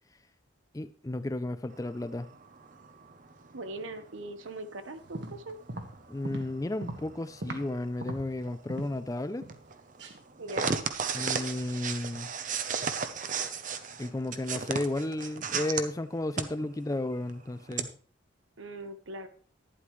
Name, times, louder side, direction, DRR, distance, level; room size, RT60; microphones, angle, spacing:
voice 1, 0.7-2.3 6.1-9.4 11.1-12.3 14.0-17.9, left 1 dB, 15° left, 0.4 m, -33 dB
sound 1, 1.7-4.5 5.0-15.8 16.3-16.4 16.9-17.0 17.3-17.8, right 5 dB, 40° right, 0.8 m, -35 dB
voice 2, 3.5-5.6 10.4-10.7 18.6-19.3, right 2 dB, 80° right, 1.1 m, -40 dB
sound 2, 5.0-7.7 8.0-9.0 9.4-9.7 10.0-10.2, right 1 dB, 60° right, 1.4 m, -40 dB
11.5 x 10.5 x 3.2 m
head